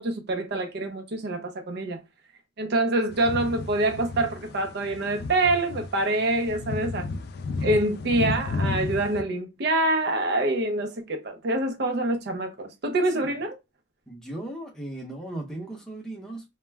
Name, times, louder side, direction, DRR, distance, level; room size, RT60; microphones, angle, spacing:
voice 1, 0.0-2.0 2.6-7.1 7.6-13.5, right 2 dB, 60° right, 0.6 m, -26 dB
sound 1, 3.1-9.2, left 3 dB, 55° left, 0.3 m, -33 dB
voice 2, 13.1-13.4 14.1-16.4, right 1 dB, 5° left, 0.7 m, -37 dB
2.3 x 2.0 x 3.3 m
head